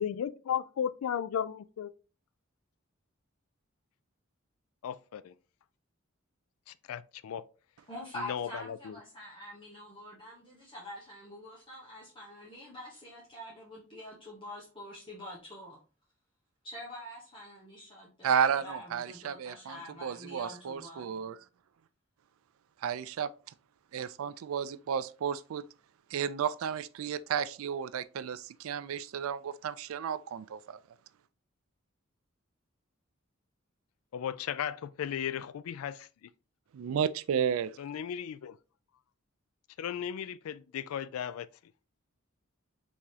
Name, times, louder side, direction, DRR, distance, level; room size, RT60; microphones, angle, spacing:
voice 1, 0.0-1.9 4.8-5.3 6.7-7.4 8.2-9.0 34.1-36.1 37.8-38.6 39.8-41.5, left 8 dB, 85° left, 0.3 m, -35 dB
voice 2, 7.9-15.8 16.6-21.1, left 1 dB, 25° left, 0.9 m, -46 dB
voice 3, 18.2-21.4 22.8-23.3 23.9-25.6 26.1-30.8 36.7-37.7, right 7 dB, 80° right, 0.3 m, -32 dB
4.8 x 3.5 x 2.7 m
head